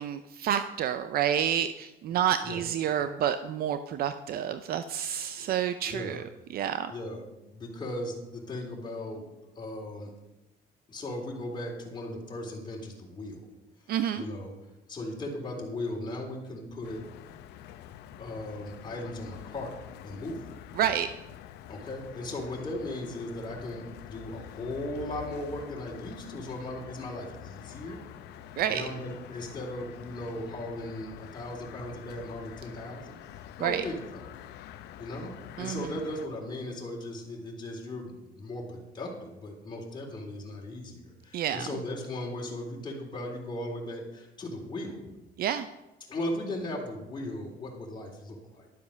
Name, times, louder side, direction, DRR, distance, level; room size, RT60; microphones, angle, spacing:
voice 1, 0.0-6.2 6.5-6.9 13.9-14.2 20.8-21.1 28.6-28.8 33.6-33.8 35.6-35.9 41.3-41.7 45.4-45.7, right 9 dB, 65° right, 11 dB, 0.6 m, -29 dB
voice 2, 5.9-6.3 6.9-9.3 9.5-10.1 10.9-13.5 14.2-14.5 14.9-17.0 18.2-19.7 20.0-20.5 21.7-28.0 28.7-33.2 33.6-34.2 35.0-45.0 46.1-48.7, left 1 dB, 25° left, -2 dB, 3.6 m, -37 dB
sound 1, 16.8-36.3, left 11 dB, 80° left, 0.7 m, -46 dB
12.0 x 7.2 x 6.4 m, 0.98 s
cardioid pair, 110°, 17 cm